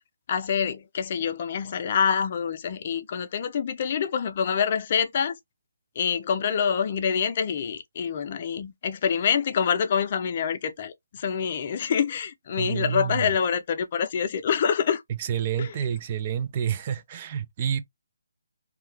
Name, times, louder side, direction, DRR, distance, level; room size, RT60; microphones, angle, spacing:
voice 1, 0.3-5.4 6.0-15.0 15.6-15.7, left 7 dB, 40° left, 0.5 m, -26 dB
voice 2, 12.6-13.2 15.2-17.8, right 8 dB, 30° right, 0.4 m, -28 dB
2.8 x 2.3 x 3.2 m
figure-of-eight pair, 155°, 0 cm